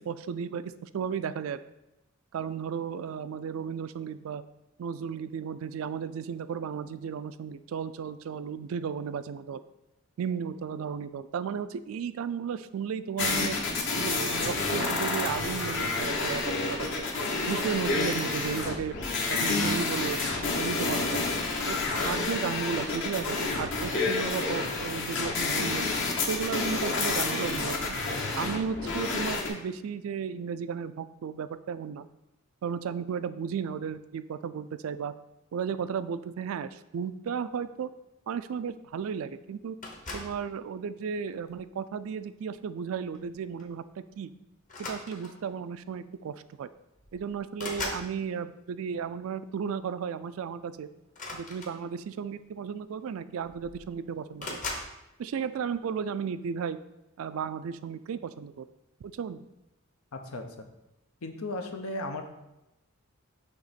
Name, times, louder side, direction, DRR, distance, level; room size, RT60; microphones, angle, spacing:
voice 1, 0.0-1.6 2.3-4.4 4.8-9.6 10.2-13.6 14.0-17.1 17.5-19.0 19.3-20.2 20.5-21.2 21.7-25.9 26.3-28.0 28.3-32.1 32.6-35.1 35.5-37.9 38.3-39.8 40.1-43.8 44.2-44.3 44.8-46.7 47.1-50.9 51.3-54.6 55.2-56.8 57.2-58.7 59.0-59.4, right 7 dB, 70° right, 13 dB, 0.3 m, -34 dB
sound 1, 13.2-29.5, left 3 dB, 60° left, 1.0 m, -29 dB
sound 2, 39.8-40.4 41.3-41.6 43.1-43.3 43.6-43.8 44.6-45.5 46.5-46.6 46.9-48.1 51.1-52.2 53.1-53.2 53.4-53.9 54.4-54.9, left 2 dB, 40° left, 0.9 m, -39 dB
voice 2, 60.1-60.7 61.2-62.2, left 2 dB, 90° left, 6 dB, 0.7 m, -36 dB
6.4 x 3.0 x 5.0 m, 0.92 s
head